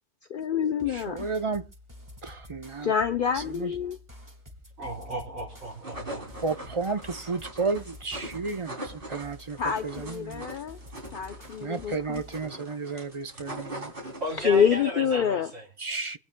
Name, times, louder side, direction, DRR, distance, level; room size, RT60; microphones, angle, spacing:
voice 1, 0.3-1.2 2.8-4.0 9.6-10.8 11.1-12.2 14.4-15.5, left 7 dB, 55° left, 0.8 m, -26 dB
sound 1, 0.8-12.5, left 1 dB, 15° right, 1.5 m, -49 dB
voice 2, 0.9-1.7 2.2-2.9 3.3-3.7 6.4-10.5 11.6-13.9 15.8-16.2, right 4 dB, 35° right, 0.6 m, -32 dB
voice 3, 4.8-6.4 14.2-15.6, right 1 dB, 75° right, 3.7 m, -35 dB
sound 2, 5.5-14.6, right 1 dB, 55° right, 3.4 m, -42 dB
25.0 x 8.6 x 2.2 m
omnidirectional pair, 1.1 m